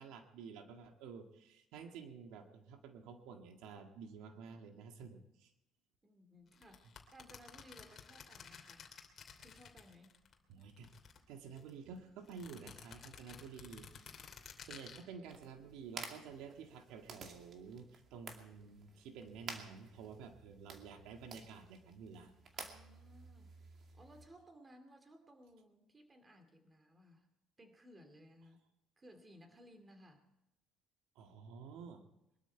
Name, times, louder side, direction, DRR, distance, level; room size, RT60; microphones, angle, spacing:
voice 1, 0.0-5.5 10.5-10.9 11.3-13.9 14.6-22.3 31.2-32.0, right 6 dB, 85° right, 5 dB, 1.8 m, -51 dB
voice 2, 6.0-8.9 9.4-10.2 22.5-23.5 23.9-27.3 27.6-28.7 29.0-30.2, equal, 20° right, 6 dB, 2.6 m, -60 dB
sound 1, 6.5-10.3 10.6-11.7 12.3-15.0, left 6 dB, 40° left, 2.8 m, -54 dB
sound 2, 15.2-24.2, right 4 dB, 45° right, 2.3 m, -52 dB
22.5 x 12.5 x 4.5 m, 0.89 s
cardioid pair, 125°, 0 cm